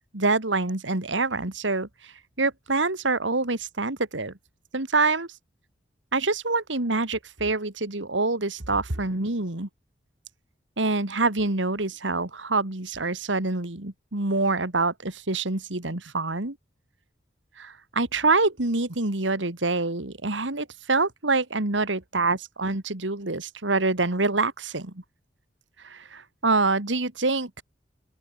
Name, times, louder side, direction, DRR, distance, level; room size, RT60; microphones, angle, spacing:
voice 1, 0.1-2.1 2.4-4.3 4.7-5.3 6.1-9.7 10.8-16.6 17.6-24.9 25.8-27.6, right 3 dB, 80° right, 2.6 m, -26 dB
open air
head